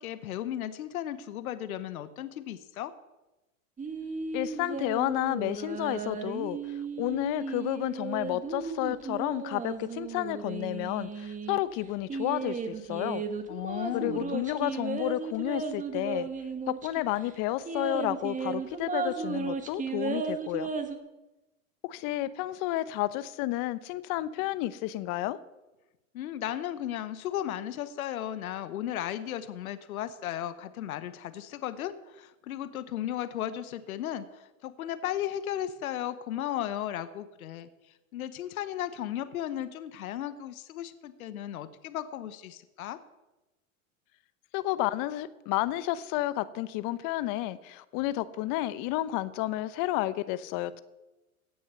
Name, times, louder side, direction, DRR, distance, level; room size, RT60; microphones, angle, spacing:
voice 1, 0.0-2.9 13.5-14.4 26.1-37.7 38.1-43.0, left 11 dB, 80° left, 13 dB, 1.0 m, -35 dB
sound 1, 3.8-11.6 12.1-17.0 17.3-17.4 17.7-21.0, right 5 dB, 20° right, 1.4 m, -35 dB
voice 2, 4.3-6.6 7.0-13.2 13.9-16.3 16.7-20.7 21.8-25.4 44.5-50.8, left 15 dB, 50° left, 16 dB, 0.9 m, -31 dB
16.5 x 6.6 x 6.8 m, 1.0 s
hypercardioid pair, 105°, 42 cm